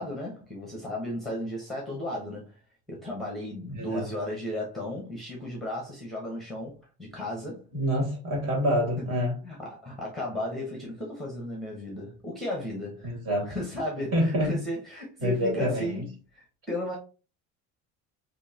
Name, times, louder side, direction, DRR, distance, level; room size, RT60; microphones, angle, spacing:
voice 1, 0.0-2.5 2.9-7.7 9.4-13.2 13.5-17.0, left 1 dB, ahead, 1.1 m, -35 dB
voice 2, 3.7-4.1 7.7-9.4 13.0-13.5 14.1-14.6 15.2-15.9, equal, 45° right, 2.6 m, -26 dB
6.3 x 2.8 x 2.9 m
cardioid pair, 180°, 33 cm